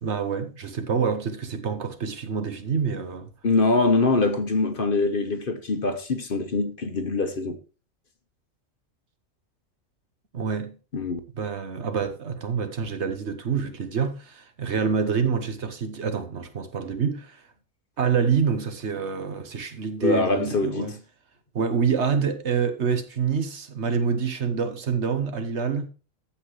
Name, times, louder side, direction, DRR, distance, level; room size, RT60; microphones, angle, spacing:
voice 1, 0.0-3.3 10.3-10.7 11.3-17.4 18.0-21.0 21.5-25.9, right 6 dB, 60° right, 1.3 m, -27 dB
voice 2, 3.4-7.6 10.9-11.2 20.0-21.0, left 3 dB, 45° left, 1.1 m, -23 dB
14.5 x 5.7 x 3.1 m
omnidirectional pair, 1.4 m